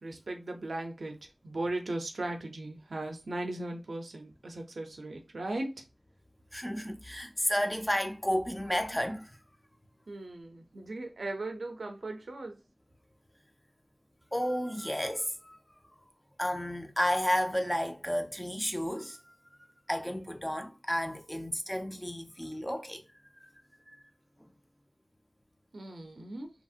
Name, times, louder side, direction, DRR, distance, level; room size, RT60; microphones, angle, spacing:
voice 1, 0.0-5.8 10.1-12.6 25.7-26.5, right 2 dB, 75° right, 0.5 m, -38 dB
voice 2, 6.5-9.4 14.3-15.6 16.4-19.2 19.9-23.0 23.4-23.5 23.9-24.0, equal, 10° left, 0.5 m, -32 dB
2.8 x 2.6 x 2.4 m
wide cardioid pair, 65°, 0 cm